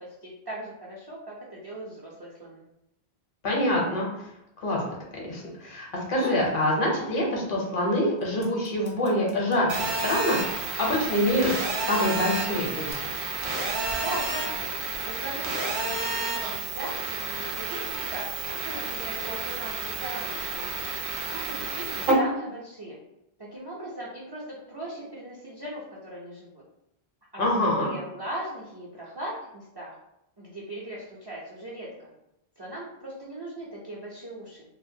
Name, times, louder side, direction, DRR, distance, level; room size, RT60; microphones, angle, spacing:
voice 1, 0.0-2.6 14.0-14.7 15.0-18.3 18.6-20.7 21.3-23.0 23.4-26.6 27.3-29.9 30.4-32.1 32.6-34.6, right 1 dB, 40° right, -6 dB, 0.4 m, -39 dB
voice 2, 3.4-4.3 4.6-4.8 5.3-13.1 27.4-27.9, left 1 dB, 60° left, -2 dB, 0.8 m, -26 dB
sound 1, 5.9-6.6 7.0-7.7 7.9-11.5 12.3-12.9, left 1 dB, 40° left, 0.5 m, -41 dB
Telephone, 9.7-22.1, right 3 dB, 60° right, 0.7 m, -31 dB
2.5 x 2.1 x 2.6 m, 0.83 s
omnidirectional pair, 1.0 m